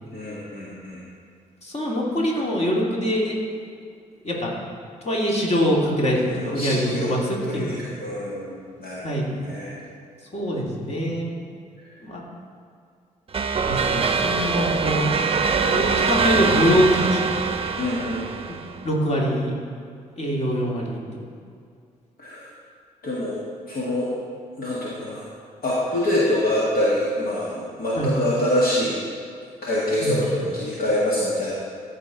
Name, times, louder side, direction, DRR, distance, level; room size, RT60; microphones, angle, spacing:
voice 1, 0.1-1.0 6.2-7.1 7.4-9.7 17.8-18.2 22.2-22.4 23.0-23.4 23.7-24.1 24.6-25.3 25.6-29.0 29.6-31.5, left 1 dB, 50° left, -7 dB, 1.9 m, -25 dB
voice 2, 1.6-3.4 4.2-4.5 5.0-7.8 9.0-9.4 10.3-11.3 12.0-12.2 13.7-15.1 15.6-17.2 18.8-19.5 20.2-21.0 28.0-28.1 30.0-30.2, equal, 35° left, -3 dB, 2.5 m, -23 dB
sound 1, 13.3-18.8, right 5 dB, 30° right, 0.8 m, -23 dB
14.0 x 5.2 x 4.0 m, 2.3 s
hypercardioid pair, 50°, 19 cm